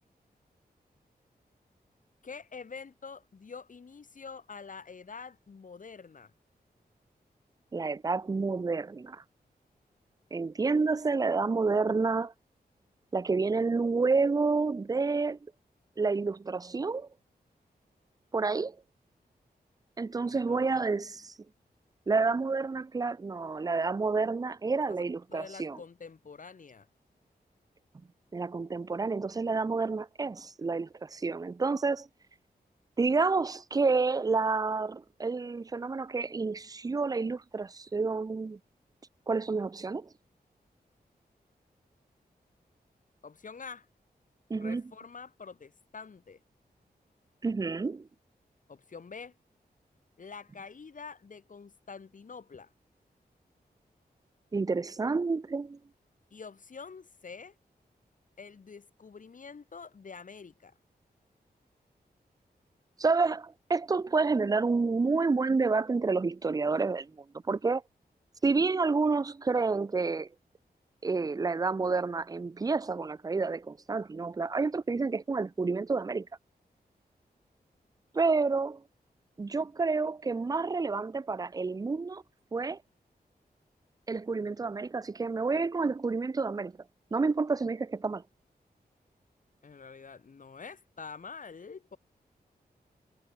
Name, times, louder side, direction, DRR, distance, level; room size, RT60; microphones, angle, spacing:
voice 1, 2.2-6.3 20.1-20.9 24.9-25.0 25.3-26.9 43.2-43.9 44.6-46.4 48.7-49.4 50.2-52.7 56.3-57.6 58.4-60.7 89.6-92.0, left 5 dB, 55° left, 2.3 m, -46 dB
voice 2, 7.7-9.2 10.3-12.3 13.1-15.4 16.0-17.1 18.3-18.8 20.0-21.3 22.1-25.8 28.3-32.1 33.0-38.6 39.3-40.1 44.5-44.8 47.4-48.1 54.5-55.8 63.0-67.1 67.5-67.8 68.4-70.3 71.0-76.3 78.1-78.8 79.4-82.2 82.5-82.8 84.1-86.7 87.1-88.2, right 4 dB, 25° right, 0.4 m, -29 dB
wide cardioid pair, 115°, 16 cm